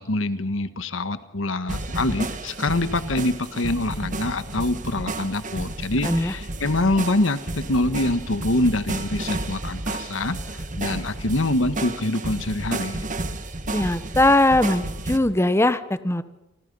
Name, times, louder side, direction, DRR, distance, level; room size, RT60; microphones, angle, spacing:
voice 1, 0.0-13.0, left 2 dB, 80° left, 11 dB, 1.4 m, -25 dB
sound 1, 1.7-15.2, right 2 dB, 40° right, 1.6 m, -32 dB
voice 2, 13.7-16.2, left 1 dB, 15° left, 13 dB, 0.9 m, -20 dB
29.0 x 25.0 x 5.5 m, 0.95 s
head